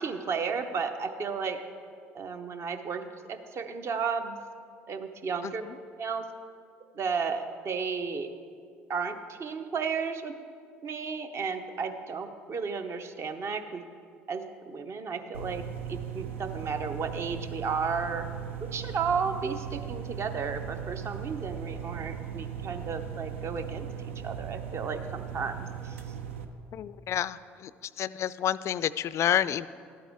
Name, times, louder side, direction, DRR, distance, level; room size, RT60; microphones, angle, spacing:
voice 1, 0.0-1.6 2.1-3.0 3.3-4.4 4.9-5.6 6.0-6.3 6.9-8.3 8.9-10.3 10.8-13.8 14.3-15.6 15.9-18.3 18.6-26.0, right 5 dB, 45° right, 7 dB, 0.8 m, -33 dB
voice 2, 5.4-5.8 26.7-27.7 28.0-29.7, left 10 dB, 45° left, 17 dB, 0.3 m, -29 dB
sound 1, 15.3-26.5, right 8 dB, 85° right, 0.6 m, -38 dB
12.5 x 8.7 x 3.6 m, 2.2 s
hypercardioid pair, 65°, 7 cm